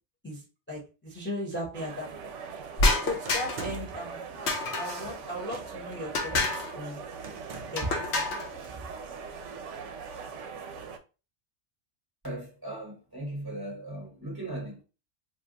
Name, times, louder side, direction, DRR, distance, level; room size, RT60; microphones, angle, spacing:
voice 1, 0.7-2.2 3.0-4.2 4.8-6.4 6.7-7.0 7.7-7.9 8.3-8.4, left 1 dB, 10° left, 0.9 m, -36 dB
sound 1, 1.7-11.0, right 5 dB, 80° right, 0.9 m, -41 dB
sound 2, 2.8-3.8 4.5-5.1 6.1-6.7 7.8-8.5, left 2 dB, 65° left, 0.9 m, -28 dB
sound 3, 3.2-4.1 5.4-6.0 7.2-7.9, right 5 dB, 55° right, 0.5 m, -42 dB
voice 2, 12.2-14.8, right 1 dB, 20° right, 1.0 m, -38 dB
2.6 x 2.3 x 3.7 m
omnidirectional pair, 1.2 m